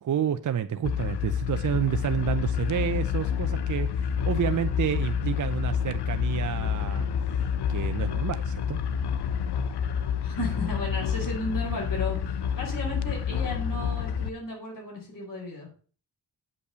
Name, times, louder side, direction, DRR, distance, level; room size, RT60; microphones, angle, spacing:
voice 1, 0.0-7.1 7.7-9.0, right 9 dB, 45° right, 0.6 m, -29 dB
sound 1, 0.8-14.3, left 8 dB, 70° left, 0.8 m, -28 dB
voice 2, 10.2-15.7, left 1 dB, 50° left, 4.7 m, -34 dB
8.4 x 5.3 x 6.7 m
cardioid pair, 90°, 42 cm